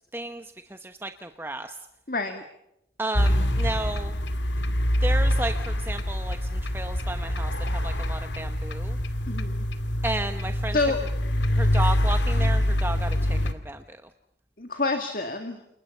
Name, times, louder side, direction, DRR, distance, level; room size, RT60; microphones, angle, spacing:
voice 1, 0.1-1.8 3.0-4.1 4.6-4.7 5.0-9.0 10.0-10.8 11.5-14.0, right 2 dB, 10° right, 7 dB, 1.0 m, -33 dB
voice 2, 2.1-2.4 9.3-9.7 10.7-11.0 14.6-15.6, left 3 dB, 50° left, 6 dB, 2.2 m, -27 dB
sound 1, 3.1-13.5, equal, 80° left, 2.4 m, -25 dB
29.5 x 29.0 x 5.6 m, 0.83 s
head